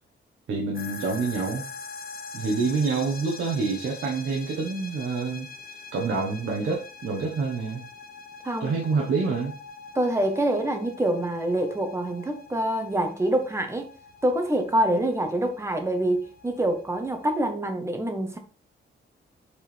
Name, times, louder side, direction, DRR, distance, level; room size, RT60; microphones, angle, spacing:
voice 1, 0.5-1.6 2.3-5.5 5.9-7.8 8.6-9.5, right 4 dB, 75° right, 1.3 m, -27 dB
sound 1, 0.7-17.5, left 4 dB, 45° left, 0.8 m, -44 dB
voice 2, 9.9-13.9 14.2-18.4, right 1 dB, 15° right, 1.1 m, -26 dB
6.7 x 4.8 x 3.4 m
wide cardioid pair, 135°, 20 cm